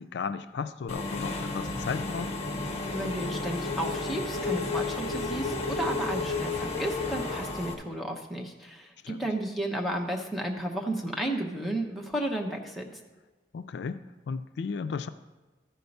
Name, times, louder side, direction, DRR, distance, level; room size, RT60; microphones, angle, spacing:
voice 1, 0.0-2.3 9.0-9.3 13.5-15.1, left 5 dB, 70° left, 11 dB, 0.3 m, -35 dB
Engine / Mechanisms, 0.9-7.7, left 3 dB, 35° left, 1.1 m, -32 dB
voice 2, 2.9-13.0, right 1 dB, ahead, 0 dB, 0.9 m, -33 dB
13.5 x 4.6 x 5.4 m, 1.2 s
head